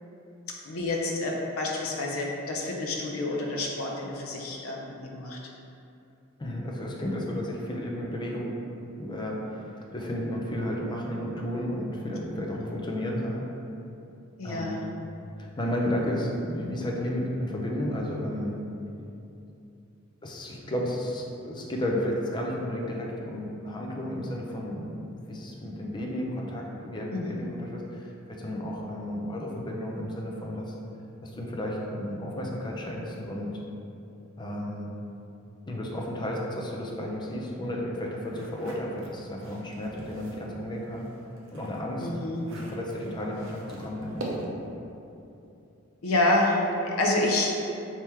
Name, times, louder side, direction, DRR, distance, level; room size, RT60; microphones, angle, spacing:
voice 1, 0.5-5.4 14.4-14.8 27.1-27.4 42.0-42.4 46.0-47.6, left 2 dB, 75° left, -1 dB, 0.5 m, -28 dB
voice 2, 6.4-8.5 9.0-13.4 14.4-14.8 15.4-18.6 20.2-30.7 31.2-33.6 34.4-34.9 35.7-41.1 41.5-42.1 42.5-44.3, left 1 dB, 20° left, -1 dB, 0.5 m, -32 dB
sound 1, 38.3-40.5 40.9-44.7, right 1 dB, 65° right, 0.6 m, -42 dB
3.5 x 2.9 x 4.4 m, 2.8 s
head